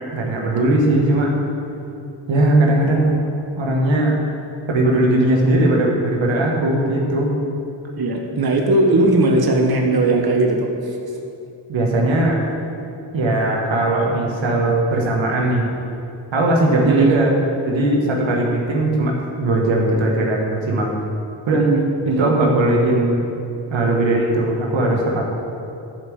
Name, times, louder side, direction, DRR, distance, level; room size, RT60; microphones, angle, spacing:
voice 1, 0.1-1.3 2.3-3.1 3.6-4.2 4.7-7.3 11.7-12.4 13.1-15.7 16.3-17.4 17.6-20.9 21.5-21.7 22.1-23.2 23.7-25.3, right 1 dB, 90° right, -1 dB, 1.5 m, -18 dB
voice 2, 8.0-10.7 16.8-17.2 21.5-22.5, right 2 dB, 55° right, 2 dB, 1.4 m, -18 dB
10.5 x 5.1 x 7.1 m, 2.7 s
cardioid pair, 45°, 44 cm